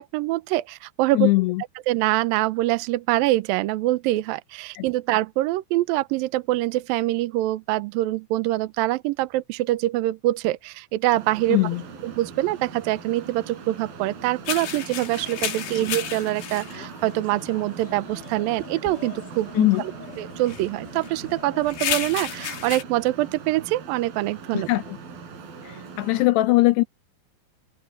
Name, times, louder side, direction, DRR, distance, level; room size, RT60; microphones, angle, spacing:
voice 1, 0.0-1.3 1.9-11.7 12.0-19.9 20.2-24.7, right 16 dB, 85° right, 2.0 m, -24 dB
voice 2, 1.1-1.6 4.8-4.9 11.5-11.8 15.7-15.8 19.5-19.8 24.5-25.0 25.6-26.8, left 19 dB, 80° left, 2.4 m, -21 dB
Traffic noise roadway noise, 11.1-26.3, right 5 dB, 55° right, 5.1 m, -41 dB
sound 1, 14.5-22.8, left 9 dB, 60° left, 3.6 m, -34 dB
open air
omnidirectional pair, 5.2 m